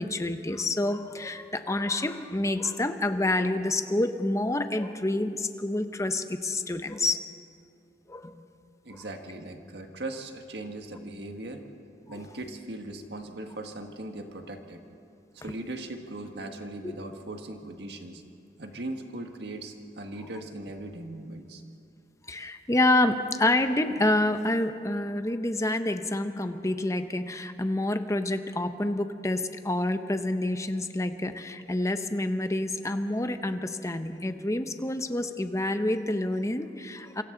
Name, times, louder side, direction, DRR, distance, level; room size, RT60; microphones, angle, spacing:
voice 1, 0.0-7.2 8.1-8.4 8.9-9.0 12.1-12.2 16.8-16.9 22.3-37.2, left 1 dB, 20° left, 9 dB, 0.8 m, -28 dB
voice 2, 8.8-11.6 12.1-14.8 15.4-18.2 18.6-21.6, right 2 dB, 70° right, 4 dB, 1.7 m, -39 dB
27.0 x 24.0 x 3.9 m, 2.5 s
head